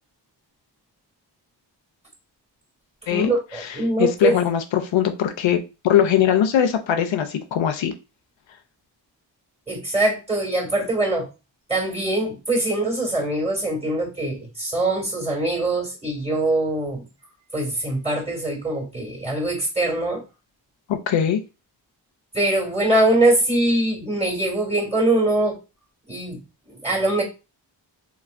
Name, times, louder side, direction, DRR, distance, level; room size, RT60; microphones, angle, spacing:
voice 1, 3.1-4.4 9.7-11.3 11.7-17.0 17.5-20.2 22.3-25.6 26.1-26.4 26.7-27.2, right 2 dB, 15° right, 0 dB, 1.9 m, -22 dB
voice 2, 4.0-5.6 5.8-7.9 20.9-21.4, left 9 dB, 80° left, 6 dB, 0.6 m, -20 dB
3.1 x 2.9 x 2.5 m, 0.29 s
cardioid pair, 60°, 45 cm